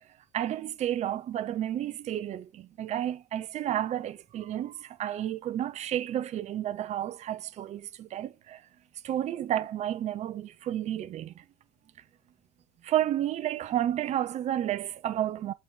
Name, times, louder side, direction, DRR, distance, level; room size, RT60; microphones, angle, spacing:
voice 1, 0.3-8.6 9.0-11.4 12.8-15.5, right 11 dB, 50° right, 1.1 m, -31 dB
6.9 x 5.1 x 5.9 m
hypercardioid pair, 75°, 15 cm